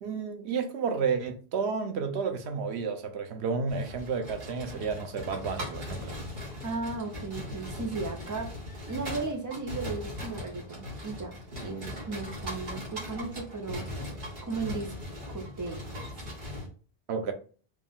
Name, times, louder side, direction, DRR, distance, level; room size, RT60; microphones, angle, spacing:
voice 1, 0.0-6.1 17.1-17.3, right 5 dB, 90° right, 1.0 m, -31 dB
sound 1, 3.7-16.7, left 1 dB, 55° right, 1.6 m, -39 dB
voice 2, 6.6-8.5 8.9-13.8 14.4-14.9 15.3-16.1, right 3 dB, 20° right, 0.7 m, -36 dB
4.8 x 2.5 x 3.5 m
omnidirectional pair, 1.1 m